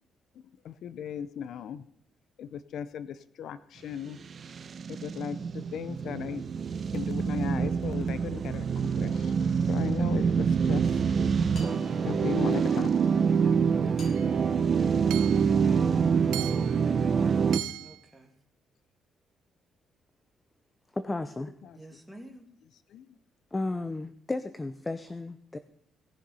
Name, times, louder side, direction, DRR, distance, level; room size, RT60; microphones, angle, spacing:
voice 1, 0.3-1.9 2.4-4.2 4.9-6.4 6.9-11.0 12.1-13.1 21.6-22.0 22.7-23.2, left 8 dB, 75° left, 15 dB, 0.6 m, -37 dB
sound 1, 4.3-17.6, right 6 dB, 45° right, 0.8 m, -26 dB
sound 2, 11.5-12.6 14.0-15.8, left 3 dB, 50° left, 5.7 m, -52 dB
Hammer / Chink clink, 14.2-14.3 15.1-15.5 16.3-16.8 17.5-18.0, right 14 dB, 85° right, 0.4 m, -38 dB
voice 2, 15.6-16.3 17.8-18.3 21.7-22.5, right 1 dB, ahead, 3 dB, 2.4 m, -51 dB
voice 3, 20.9-21.5 23.5-25.6, left 2 dB, 20° left, 11 dB, 0.7 m, -33 dB
18.0 x 6.8 x 5.5 m, 0.68 s
cardioid pair, 90°, 0 cm